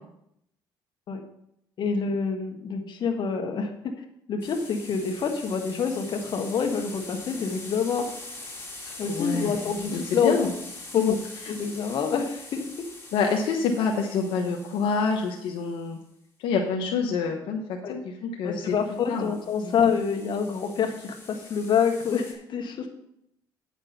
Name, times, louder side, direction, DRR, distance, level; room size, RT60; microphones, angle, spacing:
voice 1, 1.8-3.7 4.3-8.1 8.8-10.5 10.9-11.1 11.5-12.7 17.8-18.0 18.4-22.9, left 6 dB, 60° left, 4 dB, 1.5 m, -27 dB
sound 1, 4.4-15.9 18.8-22.3, left 2 dB, 25° left, 3.1 m, -43 dB
voice 2, 9.1-10.5 11.0-11.2 11.4-11.5 13.1-16.0 16.4-18.7 19.1-19.3 19.6-19.7, left 5 dB, 80° left, 2 dB, 1.0 m, -27 dB
9.1 x 6.1 x 5.7 m, 0.77 s
cardioid pair, 85°, 9 cm